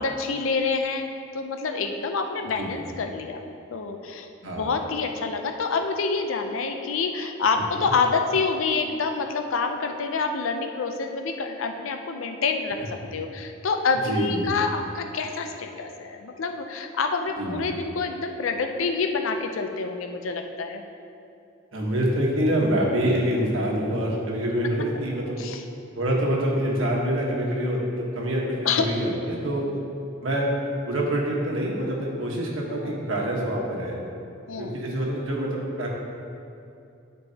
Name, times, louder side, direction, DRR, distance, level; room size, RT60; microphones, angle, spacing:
voice 1, 0.0-3.4 3.7-4.3 4.6-12.8 13.1-20.8 25.4-25.6 28.7-28.8 29.7-29.8 32.8-33.0 34.5-34.7, left 4 dB, 85° left, 5 dB, 0.5 m, -27 dB
voice 2, 2.6-2.9 4.4-4.7 7.7-7.9 12.8-12.9 13.9-14.5 17.4-17.6 21.7-25.4 25.9-29.7 30.2-30.5 30.8-34.0 34.6-35.9, right 1 dB, 80° right, -2 dB, 1.3 m, -26 dB
12.0 x 4.5 x 2.8 m, 2.7 s
head